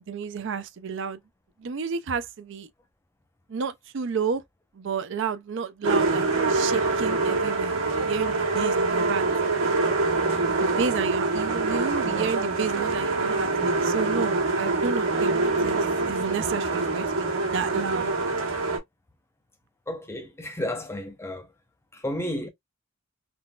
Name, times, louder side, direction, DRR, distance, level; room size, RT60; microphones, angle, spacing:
voice 1, 0.1-1.2 1.6-2.7 3.5-4.4 4.7-9.2 10.5-15.4 15.6-18.1, right 6 dB, 60° right, 0.4 m, -31 dB
sound 1, 5.8-18.8, right 3 dB, 90° right, 1.5 m, -25 dB
voice 2, 19.9-21.5 21.9-22.5, left 1 dB, 10° left, 0.7 m, -32 dB
3.8 x 2.3 x 2.2 m
head